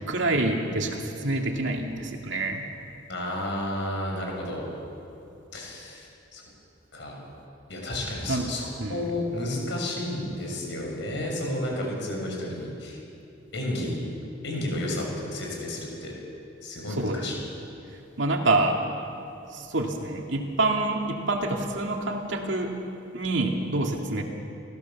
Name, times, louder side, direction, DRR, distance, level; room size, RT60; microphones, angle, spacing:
voice 1, 0.1-2.6 8.3-8.5 8.8-9.1 16.9-17.5 18.2-18.8 19.5-22.7 23.1-24.2, right 2 dB, 65° right, 2 dB, 2.3 m, -27 dB
voice 2, 3.1-4.6 5.5-6.4 6.9-7.2 7.7-13.0 13.5-14.0 14.4-16.1 16.6-17.4, left 1 dB, 60° left, 0 dB, 6.1 m, -32 dB
29.5 x 15.0 x 7.2 m, 2.8 s
head